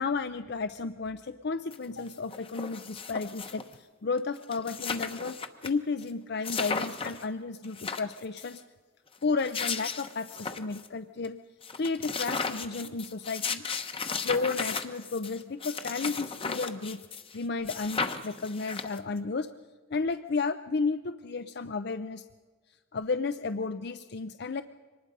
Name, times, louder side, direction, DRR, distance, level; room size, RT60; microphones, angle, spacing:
voice 1, 0.0-5.4 5.6-8.6 9.2-11.4 11.8-13.6 14.2-17.0 17.3-19.5 19.9-22.2 22.9-24.6, left 4 dB, 55° left, 11 dB, 0.6 m, -32 dB
sound 1, 1.7-1.8 2.1-3.7 4.2-4.3 4.4-5.7 6.0-6.1 6.4-7.2 7.6-8.5 9.2-10.9 11.2-11.3 11.6-17.4 17.7-19.2, left 5 dB, 25° left, 1.0 m, -35 dB
24.5 x 20.0 x 5.4 m, 1.5 s
head